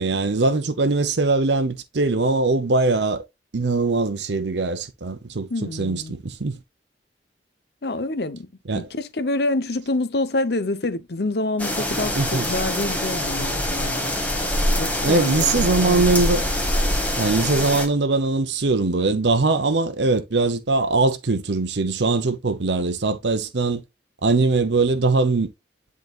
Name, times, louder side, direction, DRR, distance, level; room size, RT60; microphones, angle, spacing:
voice 1, 0.0-3.2 3.5-6.6 8.7-8.9 12.2-12.5 15.0-16.4 17.2-23.8 24.2-25.5, right 3 dB, 75° right, 0.8 m, -21 dB
voice 2, 5.5-6.2 7.8-8.5 8.7-14.2 14.8-16.1, left 2 dB, 60° left, 0.8 m, -27 dB
sound 1, 11.6-17.9, left 1 dB, 10° left, 1.5 m, -24 dB
10.5 x 4.0 x 2.4 m
head